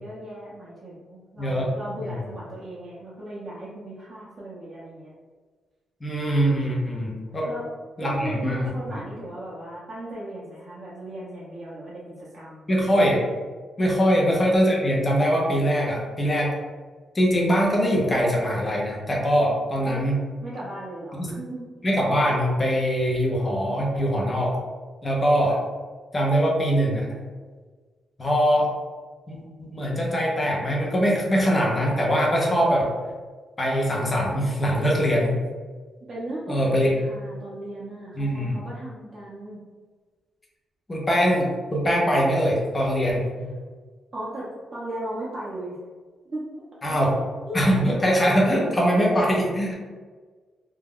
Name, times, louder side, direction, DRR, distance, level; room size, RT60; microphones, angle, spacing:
voice 1, 0.0-5.1 7.4-7.7 8.0-12.7 13.8-14.0 19.9-20.0 20.4-21.7 36.0-39.6 44.1-45.8 46.3-46.4 47.5-47.6, right 1 dB, 30° right, -8 dB, 0.6 m, -36 dB
voice 2, 1.4-1.7 2.0-2.1 6.0-7.5 8.0-9.0 12.7-13.2 13.8-16.6 17.1-20.2 21.2-21.3 21.8-24.6 25.0-25.6 26.1-27.1 28.2-28.7 29.3-32.9 33.6-35.4 36.5-36.9 38.2-38.6 40.9-43.3 46.8-47.2 47.5-49.7, equal, 20° left, -3 dB, 0.6 m, -22 dB
2.3 x 2.1 x 3.5 m, 1.4 s
cardioid pair, 135°, 0 cm